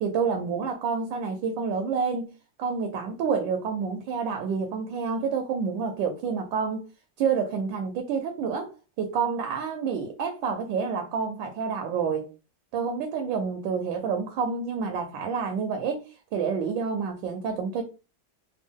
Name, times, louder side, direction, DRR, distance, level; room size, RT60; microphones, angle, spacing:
voice 1, 0.0-2.3 2.6-6.8 7.2-8.7 9.0-12.3 12.7-17.8, right 6 dB, 75° right, 1.2 m, -28 dB
3.4 x 2.3 x 3.5 m
omnidirectional pair, 2.2 m